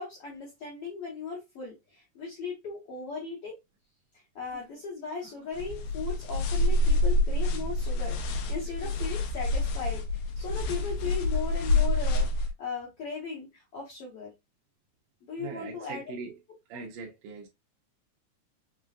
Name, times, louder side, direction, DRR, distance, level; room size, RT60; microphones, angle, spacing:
voice 1, 0.0-3.6 4.4-14.3 15.2-16.0 16.7-16.8, left 5 dB, 60° left, 1.6 m, -38 dB
sound 1, 4.4-5.7 6.5-7.2 8.6-9.4 10.8-11.6, right 3 dB, 50° right, 1.6 m, -57 dB
sound 2, 5.5-12.5, left 2 dB, 85° left, 2.2 m, -27 dB
voice 2, 15.4-16.4 16.7-17.5, right 5 dB, 80° right, 1.6 m, -41 dB
5.5 x 2.2 x 2.3 m
omnidirectional pair, 3.9 m